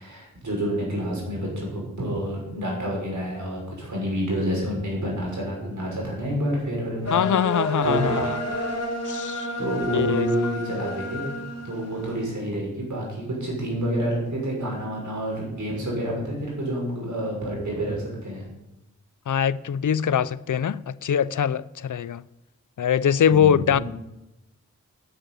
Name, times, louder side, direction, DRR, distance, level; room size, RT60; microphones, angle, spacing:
voice 1, 0.0-7.1 7.8-8.1 9.6-11.3 11.6-18.5 23.3-23.8, equal, 75° right, 6.5 m, -28 dB
voice 2, 7.1-8.4 9.0-9.5 9.9-10.5 19.3-22.2 22.8-23.8, left 8 dB, 85° left, 0.5 m, -23 dB
sound 1, 7.1-12.2, equal, 60° left, 2.6 m, -30 dB
10.0 x 9.6 x 9.4 m
wide cardioid pair, 75°, 30 cm